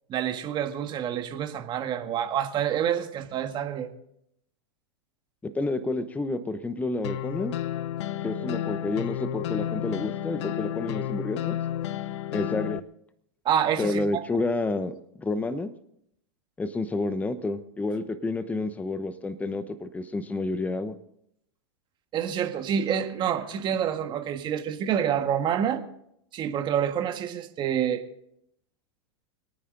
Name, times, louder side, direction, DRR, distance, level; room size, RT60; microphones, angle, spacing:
voice 1, 0.1-3.9 13.4-14.2 22.1-25.8 26.3-28.0, right 9 dB, 30° right, 6 dB, 1.6 m, -27 dB
voice 2, 5.4-7.5 8.2-11.6 12.3-12.8 13.8-15.7 16.6-20.9, left 2 dB, 10° left, 12 dB, 0.9 m, -29 dB
sound 1, 7.0-12.8, left 11 dB, 70° left, 0.6 m, -31 dB
26.0 x 9.3 x 3.9 m, 0.75 s
hypercardioid pair, 125°, 15 cm